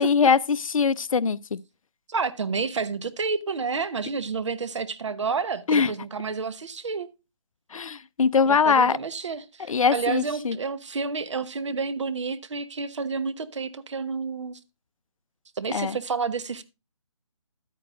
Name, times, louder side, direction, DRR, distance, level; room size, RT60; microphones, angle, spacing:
voice 1, 0.0-1.6 5.7-5.9 7.7-9.0 9.7-10.6 15.7-16.0, left 5 dB, 80° left, 0.5 m, -22 dB
voice 2, 2.1-7.1 8.5-14.6 15.6-16.6, right 4 dB, 60° right, 1.0 m, -30 dB
12.0 x 9.2 x 2.4 m
figure-of-eight pair, 160°, 17 cm